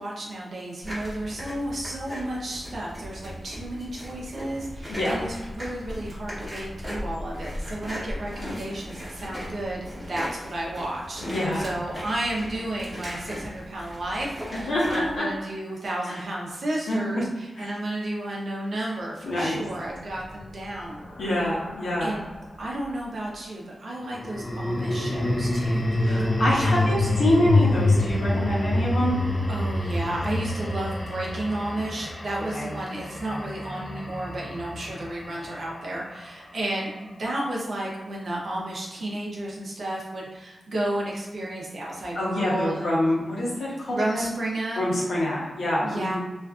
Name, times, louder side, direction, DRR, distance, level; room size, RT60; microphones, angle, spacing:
voice 1, 0.0-21.0 22.0-22.2 22.6-27.1 29.5-43.0 43.9-44.8 45.8-46.2, right 1 dB, 55° right, -3 dB, 0.6 m, -32 dB
sound 1, 0.8-15.2, equal, 10° right, 0.8 m, -38 dB
voice 2, 4.9-5.2 11.2-11.7 14.5-15.3 16.1-16.2 16.9-17.3 17.6-17.7 19.2-19.6 21.2-22.1 26.0-29.2 32.5-32.7 42.1-44.3 44.8-46.2, left 1 dB, 80° left, -5 dB, 0.8 m, -26 dB
sound 2, 20.0-22.5 24.1-36.4, left 2 dB, 30° left, 0.4 m, -27 dB
2.5 x 2.4 x 2.3 m, 1.1 s
wide cardioid pair, 150°, 0 cm